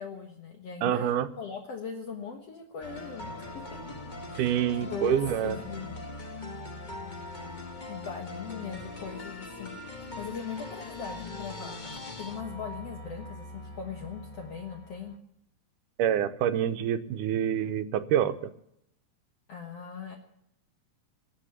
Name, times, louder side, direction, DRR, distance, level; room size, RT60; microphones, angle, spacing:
voice 1, 0.0-3.6 4.3-6.0 7.9-9.8 10.2-15.2 19.5-20.2, left 6 dB, 55° left, 2 dB, 2.3 m, -40 dB
voice 2, 0.8-1.3 4.4-5.6 16.0-18.5, right 10 dB, 85° right, 11 dB, 2.4 m, -27 dB
sound 1, 2.8-15.2, left 2 dB, 90° left, 0.4 m, -41 dB
21.0 x 8.4 x 8.1 m, 0.78 s
omnidirectional pair, 3.7 m